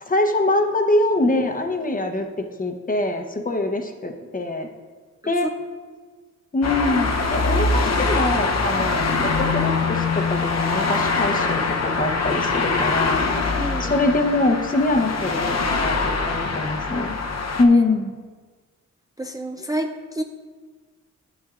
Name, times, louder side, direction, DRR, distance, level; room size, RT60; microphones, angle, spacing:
voice 1, 0.0-2.3 2.6-4.7 5.3-5.5 6.5-13.2 13.8-17.2 17.6-18.1, left 2 dB, 25° left, 5 dB, 0.8 m, -23 dB
sound 1, 6.6-17.6, left 3 dB, 55° left, 0.8 m, -23 dB
voice 2, 13.6-14.1 17.7-17.8 19.2-20.2, right 1 dB, 10° right, 4 dB, 0.4 m, -29 dB
9.5 x 9.0 x 2.5 m, 1.5 s
cardioid pair, 85°, 31 cm